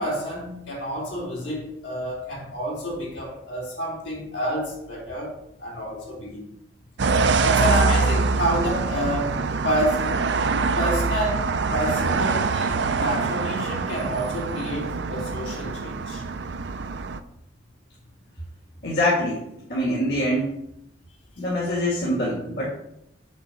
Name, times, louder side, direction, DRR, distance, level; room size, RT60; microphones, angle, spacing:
voice 1, 0.0-5.3 5.6-6.5 7.4-9.4 9.6-10.1 10.7-11.4 11.7-16.2, equal, 80° left, -3 dB, 3.2 m, -28 dB
sound 1, 7.0-17.2, right 4 dB, 70° right, 0.5 m, -24 dB
voice 2, 18.8-19.4 19.7-20.5 21.4-22.7, left 1 dB, 60° left, -5 dB, 1.9 m, -24 dB
6.5 x 4.7 x 6.7 m, 0.77 s
head